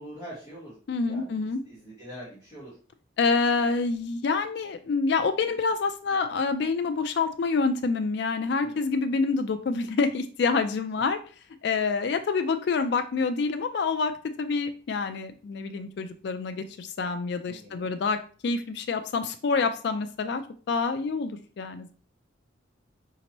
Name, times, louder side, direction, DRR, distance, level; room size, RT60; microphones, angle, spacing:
voice 1, 0.0-0.7 1.0-2.7 8.6-8.8 17.5-17.9, equal, 20° right, -9 dB, 1.7 m, -44 dB
voice 2, 0.9-1.6 3.2-11.2 11.6-14.1 14.4-20.4 20.7-21.9, left 4 dB, 55° left, 8 dB, 0.3 m, -27 dB
5.1 x 2.8 x 2.9 m, 0.40 s
head